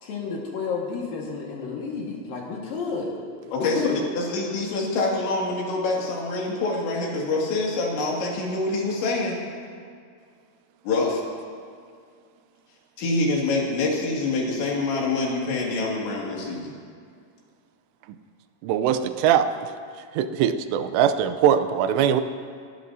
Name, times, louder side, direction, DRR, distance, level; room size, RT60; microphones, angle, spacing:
voice 1, 0.0-3.1 3.6-4.1, left 5 dB, 60° left, -2 dB, 2.9 m, -30 dB
voice 2, 3.5-9.4 10.8-11.2 13.0-16.7, left 3 dB, 80° left, -2 dB, 4.5 m, -25 dB
voice 3, 18.6-19.7 20.1-22.2, right 9 dB, 80° right, 10 dB, 2.7 m, -21 dB
28.5 x 13.0 x 2.7 m, 2.2 s
omnidirectional pair, 5.2 m